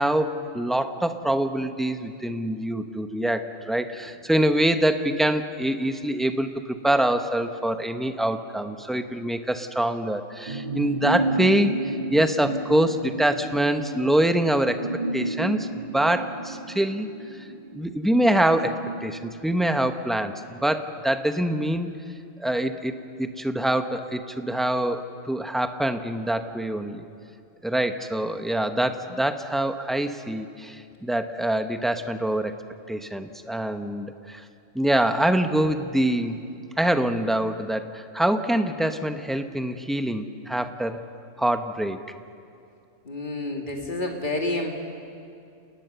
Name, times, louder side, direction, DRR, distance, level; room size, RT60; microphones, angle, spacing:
voice 1, 0.0-17.5 17.7-21.9 22.4-27.1 27.6-32.5 32.9-34.4 34.7-36.4 36.8-41.1 41.4-42.0, right 1 dB, ahead, 7 dB, 0.7 m, -25 dB
sound 1, 10.5-20.3 20.6-20.7, right 2 dB, 40° right, 1.5 m, -32 dB
voice 2, 43.0-44.7, left 2 dB, 40° left, 1 dB, 2.6 m, -29 dB
29.5 x 18.5 x 6.9 m, 2.5 s
omnidirectional pair, 1.4 m